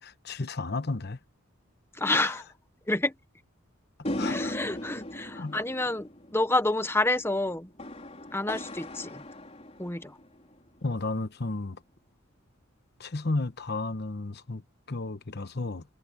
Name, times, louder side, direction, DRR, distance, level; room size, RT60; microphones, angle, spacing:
voice 1, 0.0-1.2 2.1-2.4 4.0-4.6 5.3-5.9 10.8-11.8 13.0-14.6 14.9-15.8, left 3 dB, 50° left, 1.0 m, -33 dB
voice 2, 1.9-2.4 2.9-3.1 4.3-7.7 8.3-9.2 9.8-10.2, left 2 dB, 10° left, 1.0 m, -28 dB
sound 1, 4.0-10.5, left 1 dB, 30° left, 4.3 m, -38 dB
head